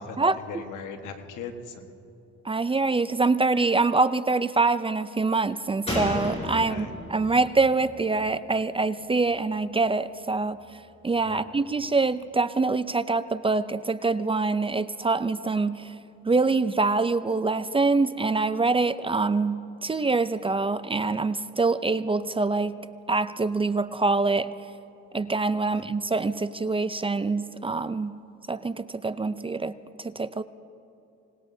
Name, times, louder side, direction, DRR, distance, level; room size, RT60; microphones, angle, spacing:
voice 1, 0.0-1.9 6.7-6.9 11.2-11.4 25.7-25.8, left 5 dB, 85° left, 6 dB, 1.4 m, -39 dB
voice 2, 2.4-10.6 11.0-15.9 16.3-22.8 23.1-24.5 25.1-28.2 28.5-30.4, right 3 dB, 20° right, 13 dB, 0.4 m, -25 dB
Slam, 5.9-9.3 9.6-9.7, left 1 dB, 20° left, 4.5 m, -34 dB
26.5 x 19.0 x 2.7 m, 2.8 s
cardioid pair, 90°, 30 cm